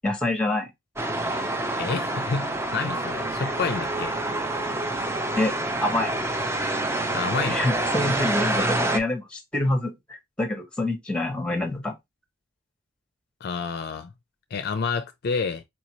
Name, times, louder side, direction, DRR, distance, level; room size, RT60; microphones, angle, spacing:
voice 1, 0.0-0.7 5.4-5.5 5.8-6.1 7.5-9.9 10.4-11.9, left 2 dB, 5° left, 1.1 m, -26 dB
sound 1, 1.0-9.0, right 2 dB, 15° right, 0.5 m, -27 dB
voice 2, 1.8-4.2 7.1-7.6 13.4-14.1 14.5-15.6, left 5 dB, 55° left, 0.4 m, -29 dB
4.5 x 2.8 x 2.9 m
head